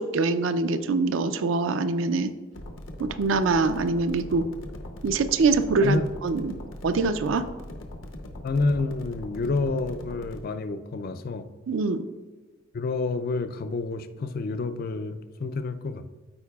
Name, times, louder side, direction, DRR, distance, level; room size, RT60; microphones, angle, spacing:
voice 1, 0.0-2.3 3.0-4.5 5.0-6.6 6.8-7.5 11.7-12.0, right 3 dB, 70° right, 10 dB, 0.4 m, -24 dB
sound 1, 2.5-10.5, left 1 dB, 65° left, 0.8 m, -40 dB
voice 2, 8.4-11.5 12.7-16.1, left 3 dB, 45° left, 11 dB, 0.4 m, -28 dB
13.0 x 4.6 x 2.3 m, 1.3 s
head